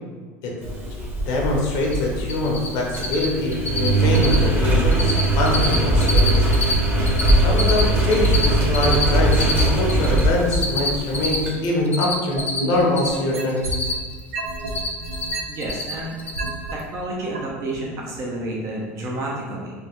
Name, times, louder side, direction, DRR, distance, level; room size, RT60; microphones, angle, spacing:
Engine, 0.6-11.5, right 1 dB, 25° right, 1.0 m, -20 dB
voice 1, 1.3-6.5 7.4-13.7, left 2 dB, 65° left, -1 dB, 0.8 m, -23 dB
Cricket, 1.8-1.9 2.2-2.7 2.9-3.3 3.5-3.9 4.1-4.4 4.7-5.2 5.5-6.7 7.0-10.2 10.5-13.1 13.4-14.2 14.5-15.3 15.6-15.9 16.2-16.5, left 3 dB, 20° left, 0.5 m, -25 dB
sound 1, 12.4-13.9 14.3-16.7 17.3-17.4, right 3 dB, 90° right, 0.5 m, -30 dB
voice 2, 15.5-16.2 16.7-19.7, right 1 dB, 45° right, -2 dB, 0.6 m, -30 dB
3.3 x 2.1 x 3.0 m, 1.4 s
supercardioid pair, 90°, 7 cm